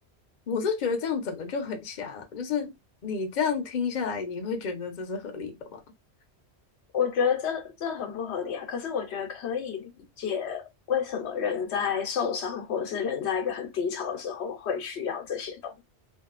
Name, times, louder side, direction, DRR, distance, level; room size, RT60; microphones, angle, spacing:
voice 1, 0.5-2.7 3.0-5.8, left 5 dB, 50° left, 0.7 m, -30 dB
voice 2, 6.9-15.8, left 7 dB, 85° left, 1.0 m, -30 dB
2.6 x 2.3 x 2.4 m
omnidirectional pair, 1.1 m